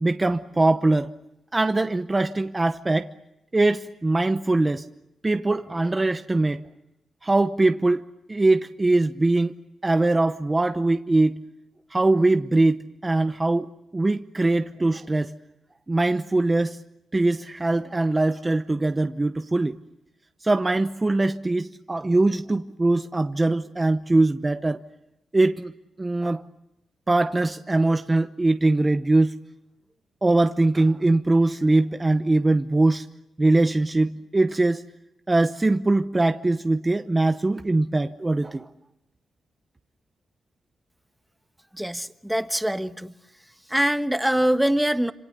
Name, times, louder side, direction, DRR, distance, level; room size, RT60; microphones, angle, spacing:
voice 1, 0.0-1.1 1.5-3.1 3.5-4.9 5.2-6.6 7.2-9.5 9.8-11.4 11.9-15.3 15.9-16.8 17.1-19.8 20.4-24.8 25.3-25.7 26.0-26.4 27.1-29.3 30.2-33.1 33.4-34.8 35.3-38.7, right 2 dB, 20° right, 0.9 m, -22 dB
voice 2, 41.8-43.1 43.7-45.1, right 1 dB, 5° right, 1.2 m, -23 dB
27.5 x 27.0 x 6.7 m
cardioid pair, 95°, 0 cm